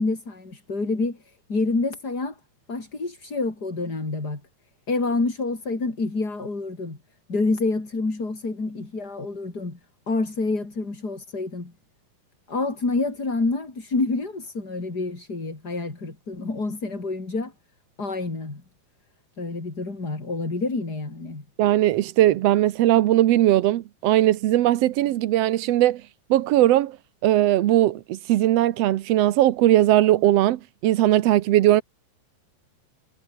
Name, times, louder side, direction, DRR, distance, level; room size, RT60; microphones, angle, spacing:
voice 1, 0.0-2.4 2.7-4.4 4.9-7.0 7.3-9.8 10.1-11.7 12.5-17.5 18.0-18.6 19.4-21.5, left 3 dB, 30° left, 5.1 m, -28 dB
voice 2, 21.6-26.0 26.3-27.0 27.2-31.8, right 14 dB, 65° right, 1.7 m, -19 dB
omnidirectional pair, 3.7 m